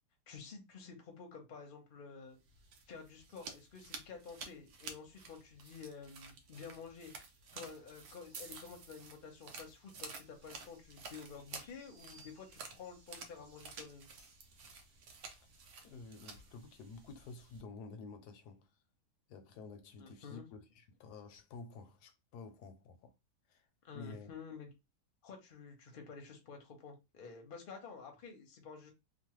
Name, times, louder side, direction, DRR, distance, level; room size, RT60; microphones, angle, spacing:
voice 1, 0.3-2.4 2.9-7.1 7.5-14.1 20.0-20.5 23.8-24.7 25.2-28.9, left 5 dB, 45° left, 0.7 m, -50 dB
sound 1, 2.4-17.6, right 4 dB, 70° right, 1.1 m, -52 dB
sound 2, 10.3-17.5, right 2 dB, 50° right, 0.6 m, -68 dB
voice 2, 15.8-18.7 19.3-23.1 23.5-23.7 23.9-24.3, left 4 dB, 75° left, 1.1 m, -51 dB
3.1 x 2.2 x 3.0 m
omnidirectional pair, 1.8 m